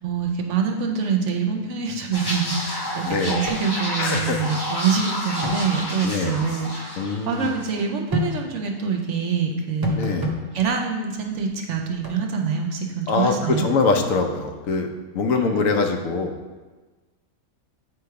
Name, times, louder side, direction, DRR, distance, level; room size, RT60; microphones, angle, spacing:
voice 1, 0.0-10.2 10.5-13.6 15.5-15.7, right 6 dB, 65° right, 3 dB, 0.8 m, -25 dB
sound 1, 2.1-7.8 8.1-8.4, left 1 dB, 20° left, 0.9 m, -30 dB
voice 2, 3.0-3.4 4.0-4.4 6.0-6.4 7.0-7.5 10.0-10.3 13.1-16.3, left 4 dB, 70° left, 4 dB, 1.0 m, -23 dB
sound 2, 3.5-3.6 3.9-4.0 5.4-5.6 8.1-8.3 9.8-10.4 12.0-12.2, equal, 30° right, 0.4 m, -26 dB
7.8 x 3.1 x 4.7 m, 1.3 s
omnidirectional pair, 1.5 m